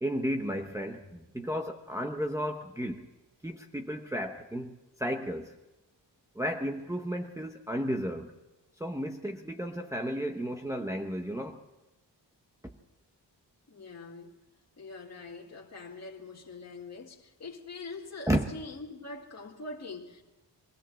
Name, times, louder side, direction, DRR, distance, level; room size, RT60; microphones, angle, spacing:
voice 1, 0.0-3.1 3.4-5.5 6.3-8.3 8.8-11.6 12.6-12.7 18.3-18.5, equal, 5° right, 0.8 m, -33 dB
voice 2, 13.7-14.3 14.8-20.2, left 3 dB, 40° left, 2.1 m, -43 dB
22.0 x 16.5 x 7.4 m
wide cardioid pair, 180°, 42 cm